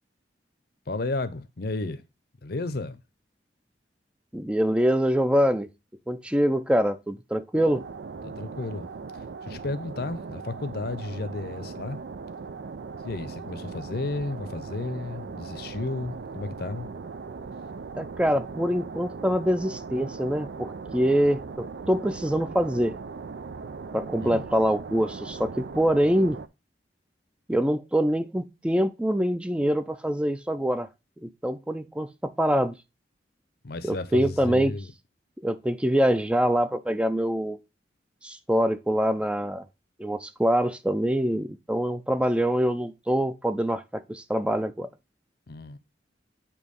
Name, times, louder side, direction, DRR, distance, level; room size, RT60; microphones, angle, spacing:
voice 1, 0.9-2.0 2.4-3.0 8.2-8.9 9.4-12.0 13.0-16.9 24.2-24.5 33.6-34.9 45.5-45.8, left 2 dB, 60° left, 0.7 m, -33 dB
voice 2, 4.3-5.7 6.1-7.8 18.0-23.0 23.9-26.4 27.5-30.9 31.2-32.8 33.8-34.7 35.4-37.6 38.2-39.6 40.0-44.9, equal, 5° right, 0.4 m, -25 dB
sound 1, 7.5-26.5, right 4 dB, 65° right, 0.4 m, -39 dB
8.5 x 2.9 x 5.2 m
head